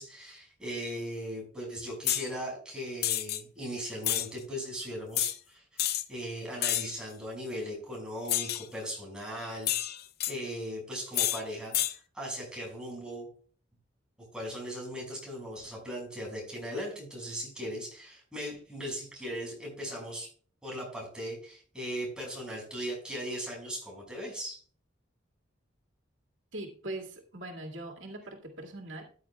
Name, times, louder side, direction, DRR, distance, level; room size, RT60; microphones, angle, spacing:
voice 1, 0.0-9.7 10.3-13.3 14.3-20.3 20.6-24.6, equal, 5° right, -2 dB, 6.1 m, -38 dB
sound 1, 2.1-2.3 3.0-3.4 4.0-4.3 5.2-5.4 5.8-6.0 6.6-7.0 8.3-8.7 9.7-10.3 11.1-11.4 11.7-11.9, left 13 dB, 55° left, 0.6 m, -29 dB
voice 2, 26.5-29.0, right 1 dB, 90° right, 1 dB, 2.3 m, -41 dB
14.0 x 9.9 x 2.4 m, 0.43 s
head